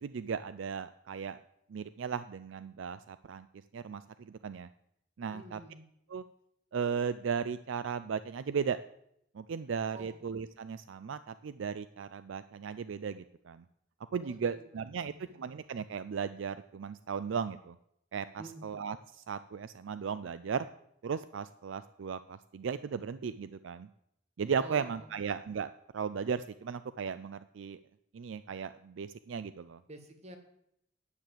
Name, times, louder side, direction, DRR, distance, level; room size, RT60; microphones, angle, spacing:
voice 1, 0.0-1.4 1.7-3.5 3.7-4.7 5.2-5.6 6.1-6.2 6.7-8.8 9.3-13.6 14.1-17.8 18.1-20.7 21.0-23.9 24.4-27.8 28.1-29.8, right 6 dB, 70° right, 13 dB, 0.4 m, -36 dB
voice 2, 5.3-5.8 9.9-10.2 14.2-15.5 18.4-18.7 24.6-25.2 29.9-30.4, right 2 dB, 35° right, 6 dB, 1.7 m, -50 dB
9.9 x 6.8 x 7.6 m, 0.76 s
head